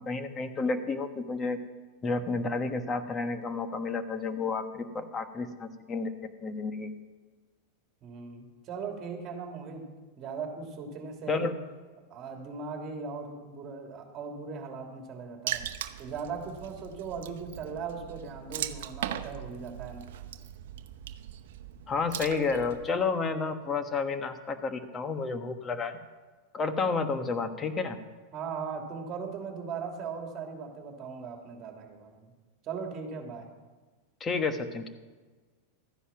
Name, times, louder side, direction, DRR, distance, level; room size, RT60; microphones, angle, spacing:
voice 1, 0.0-1.6 2.0-6.1 6.4-6.9 11.3-11.6 21.9-26.0 26.5-28.0 34.2-34.9, left 4 dB, 25° left, 8 dB, 1.2 m, -31 dB
voice 2, 8.0-9.9 10.2-11.5 12.1-15.6 16.0-20.1 28.3-32.3 32.6-33.5, right 5 dB, 35° right, 2 dB, 2.8 m, -39 dB
Water / Splash splatter, 15.5-22.9, right 11 dB, 75° right, 0.8 m, -39 dB
14.0 x 10.0 x 5.8 m, 1.3 s
hypercardioid pair, 120°, 0 cm